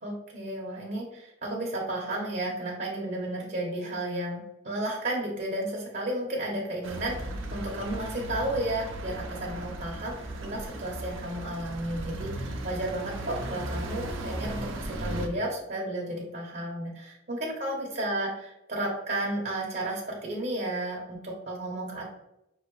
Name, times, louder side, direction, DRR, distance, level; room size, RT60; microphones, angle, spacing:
voice 1, 0.0-18.3 18.7-22.1, right 1 dB, 50° right, -2 dB, 0.9 m, -33 dB
sound 1, 6.8-15.3, right 1 dB, 85° right, 0.7 m, -36 dB
5.5 x 2.8 x 3.1 m, 0.88 s
head